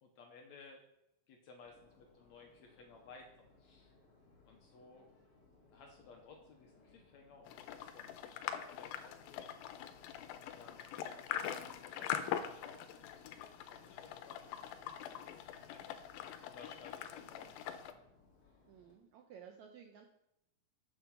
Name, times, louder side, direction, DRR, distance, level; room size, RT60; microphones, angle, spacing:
voice 1, 0.0-0.8 1.3-3.9 4.5-5.1 5.7-9.5 10.4-11.6 12.0-15.8 16.5-18.0, left 4 dB, 70° left, 2 dB, 1.8 m, -58 dB
Subway metro underground, 1.6-18.9, left 3 dB, 45° left, 2.7 m, -66 dB
sound 1, 7.5-17.9, left 10 dB, 90° left, 2.3 m, -43 dB
voice 2, 18.7-20.1, right 8 dB, 85° right, 3 dB, 1.6 m, -55 dB
7.5 x 6.9 x 5.8 m, 0.83 s
omnidirectional pair, 4.0 m